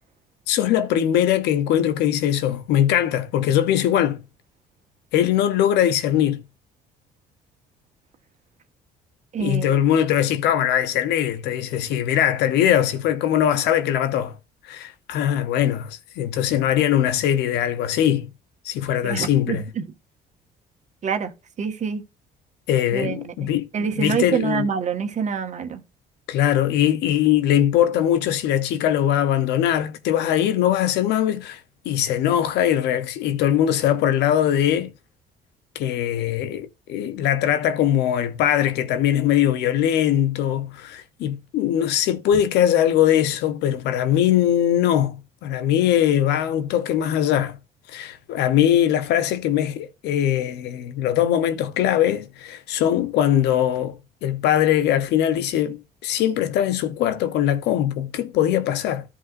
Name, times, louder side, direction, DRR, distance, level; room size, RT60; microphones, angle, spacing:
voice 1, 0.5-4.2 5.1-6.4 9.4-14.4 14.6-18.3 18.6-19.7 22.7-24.7 26.3-34.9 35.7-47.6 47.9-59.0, left 11 dB, 85° left, 1.0 m, -21 dB
voice 2, 9.3-9.8 19.0-19.8 21.0-21.3 21.6-22.0 22.9-23.3 23.7-25.8, right 6 dB, 45° right, 1.6 m, -26 dB
13.5 x 5.5 x 2.7 m
cardioid pair, 110°, 17 cm